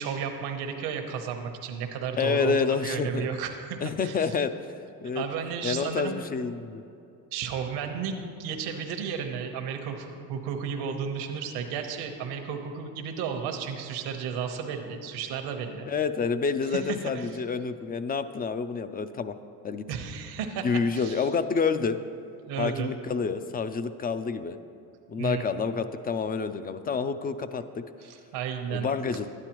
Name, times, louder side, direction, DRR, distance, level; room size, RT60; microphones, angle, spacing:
voice 1, 0.0-4.4 5.1-6.2 7.3-15.9 16.6-17.4 19.9-20.7 20.9-21.3 22.5-22.9 25.2-25.4 28.0-28.9, right 7 dB, 85° right, 4 dB, 1.0 m, -33 dB
voice 2, 2.2-3.3 3.8-4.5 5.0-5.2 5.6-6.8 15.8-19.3 19.6-19.8 20.6-22.0 22.6-24.6 25.1-27.8 28.7-29.3, left 5 dB, 25° left, 11 dB, 0.3 m, -28 dB
12.5 x 9.8 x 3.0 m, 2.6 s
cardioid pair, 100°, 38 cm